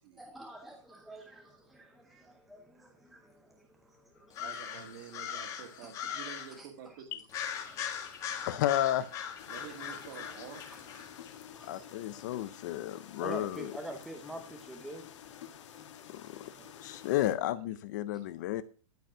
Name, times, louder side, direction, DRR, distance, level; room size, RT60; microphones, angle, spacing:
voice 1, 0.2-4.6 5.8-5.9 6.6-7.0 7.6-8.6 9.5-9.7 11.3-16.4 18.1-18.2, right 1 dB, ahead, 0.7 m, -48 dB
sound 1, 4.3-6.6 7.3-11.3, left 8 dB, 20° left, 1.4 m, -40 dB
voice 2, 4.4-7.2 9.5-11.0 11.8-12.0 16.5-17.1, right 8 dB, 40° right, 2.3 m, -49 dB
voice 3, 8.5-9.1 11.7-13.6 16.1-16.3 16.8-18.6, left 13 dB, 35° left, 0.5 m, -32 dB
sound 2, 9.4-17.3, left 9 dB, 65° left, 1.8 m, -50 dB
12.5 x 5.2 x 6.0 m
supercardioid pair, 175°, 16 cm